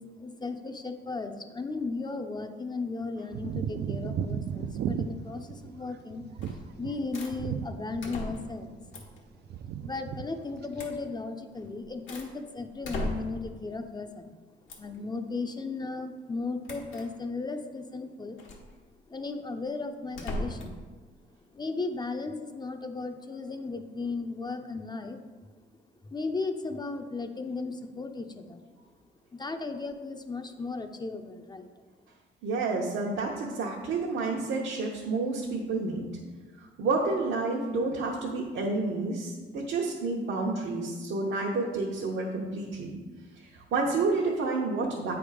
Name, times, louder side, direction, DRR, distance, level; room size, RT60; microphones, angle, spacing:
voice 1, 0.0-8.9 9.8-14.3 14.6-18.4 19.1-20.8 21.5-25.2 26.1-28.6 29.3-31.7, left 3 dB, 20° left, 7 dB, 0.6 m, -36 dB
sound 1, 3.3-8.3 8.5-9.2 9.5-10.3 10.5-10.9, right 7 dB, 55° right, 0.4 m, -35 dB
sound 2, 6.4-6.7 7.1-7.4 8.0-8.6 8.9-9.2 10.8-11.0 11.6-12.3 12.8-13.5 14.7-15.0 16.6-17.1 18.4-18.7 20.1-20.8, left 1 dB, 75° left, 1.4 m, -37 dB
voice 2, 32.4-36.1 36.6-43.0 43.4-45.1, right 3 dB, 75° right, -3 dB, 1.0 m, -30 dB
8.5 x 3.5 x 4.9 m, 1.4 s
cardioid pair, 90°, 20 cm